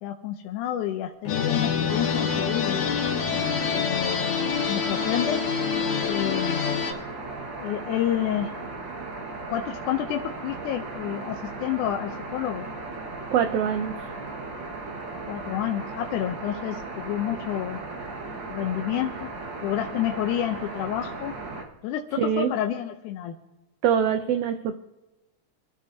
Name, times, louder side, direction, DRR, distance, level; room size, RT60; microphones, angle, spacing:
voice 1, 0.0-2.9 3.7-5.4 6.1-6.7 7.6-8.5 9.5-12.7 15.3-17.8 18.5-19.3 19.6-21.3 21.8-23.4, left 11 dB, 85° left, 4 dB, 2.2 m, -29 dB
Bowed string instrument, 1.2-4.5, left 7 dB, 45° left, 1.9 m, -32 dB
sound 1, 1.3-6.9, left 6 dB, 65° left, 2.5 m, -27 dB
sound 2, 1.9-21.6, right 3 dB, 45° right, 1.9 m, -36 dB
voice 2, 13.3-13.9 22.2-22.5 23.8-24.8, right 8 dB, 85° right, 8 dB, 1.3 m, -23 dB
24.5 x 12.5 x 2.7 m, 1.0 s
omnidirectional pair, 3.5 m